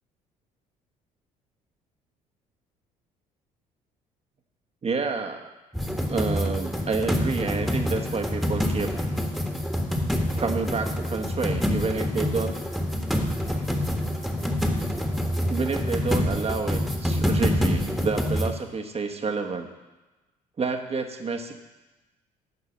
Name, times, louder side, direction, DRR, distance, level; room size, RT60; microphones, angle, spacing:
voice 1, 4.8-5.5 6.1-8.9 10.4-12.5 15.5-19.7 20.6-21.5, right 4 dB, 35° right, 4 dB, 1.3 m, -29 dB
sound 1, 5.7-18.5, left 1 dB, ahead, 1.6 m, -26 dB
9.4 x 5.5 x 7.0 m, 1.1 s
hypercardioid pair, 60°, 18 cm